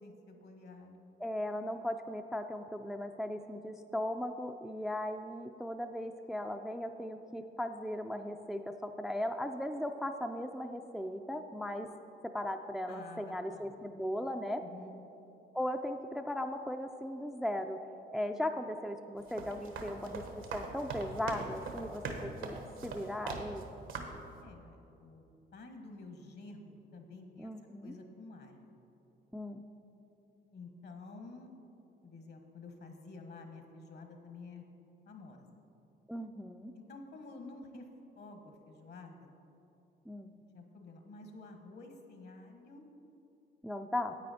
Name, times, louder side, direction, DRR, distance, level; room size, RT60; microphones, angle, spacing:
voice 1, 0.0-1.1 12.9-13.9 14.6-14.9 24.4-25.3 25.5-27.5 27.8-28.7 30.5-31.5 32.0-34.6 35.1-35.6 36.7-37.9 38.2-39.3 40.5-42.9, left 3 dB, 60° left, 5 dB, 1.3 m, -50 dB
voice 2, 1.2-11.9 12.3-14.6 15.5-17.8 18.1-23.6 27.4-27.9 29.3-29.6 36.1-36.7 40.1-40.3 43.6-44.2, left 1 dB, ahead, 6 dB, 0.3 m, -37 dB
sound 1, 19.2-23.6 23.9-24.3, right 4 dB, 85° right, 1.1 m, -41 dB
9.8 x 8.5 x 4.2 m, 3.0 s
cardioid pair, 90°, 20 cm